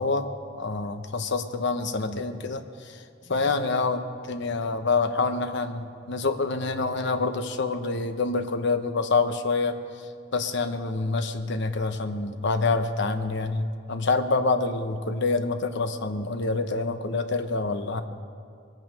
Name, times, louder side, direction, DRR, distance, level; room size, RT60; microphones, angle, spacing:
voice 1, 0.0-2.6 3.3-9.7 10.3-18.0, left 3 dB, 65° left, 8 dB, 0.9 m, -26 dB
22.0 x 9.2 x 5.4 m, 2.4 s
head